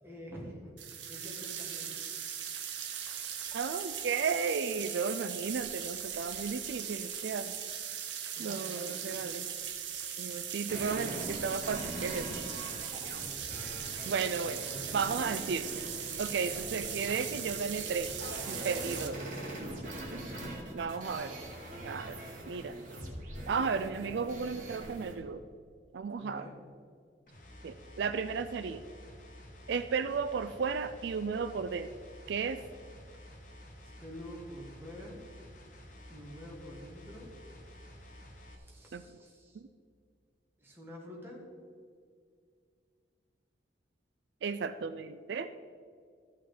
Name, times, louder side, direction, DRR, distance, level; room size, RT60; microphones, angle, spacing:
voice 1, 0.0-0.7 1.1-1.9 8.1-9.3 13.1-14.1 14.6-15.3 18.9-19.8 26.2-26.6 33.8-35.2 36.1-37.3 38.5-39.6 40.6-41.5, equal, 10° right, -3 dB, 1.9 m, -48 dB
sound 1, 0.8-19.1, right 8 dB, 90° right, 1.0 m, -39 dB
voice 2, 3.5-7.5 8.4-9.5 10.2-12.3 14.1-14.6 14.9-15.8 16.2-18.1 18.5-19.2 20.7-21.4 21.8-22.2 22.5-22.8 23.5-25.4 25.9-26.5 27.6-28.8 29.7-31.9 32.3-32.6 38.9-39.0 44.4-45.5, right 5 dB, 75° right, 11 dB, 0.4 m, -34 dB
sound 2, 10.7-25.1, right 1 dB, 45° right, 2.0 m, -42 dB
sound 3, 27.3-38.6, left 1 dB, 45° left, 1.1 m, -51 dB
13.5 x 5.6 x 5.0 m, 2.2 s
head